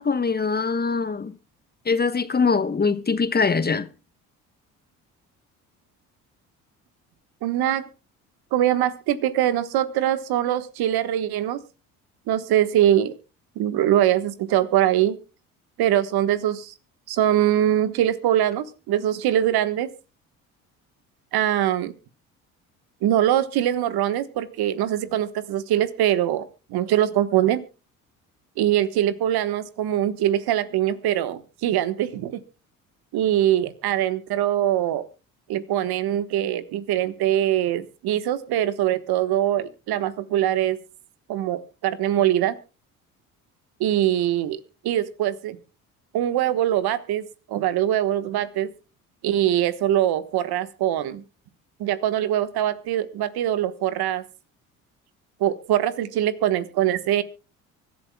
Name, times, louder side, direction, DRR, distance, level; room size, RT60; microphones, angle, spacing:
voice 1, 0.0-1.3 1.8-3.9, left 4 dB, 25° left, 1.0 m, -22 dB
voice 2, 7.4-7.9 8.5-11.6 12.3-13.1 13.6-15.2 15.8-16.7 17.1-19.9 21.3-21.9 23.0-27.6 28.6-32.4 33.1-35.0 35.5-40.8 41.3-42.6 43.8-44.6 44.8-45.6 46.1-48.7 49.2-51.2 51.8-54.2 55.4-57.2, right 12 dB, 65° right, 1.4 m, -23 dB
24.5 x 11.5 x 2.3 m
hypercardioid pair, 60°, 41 cm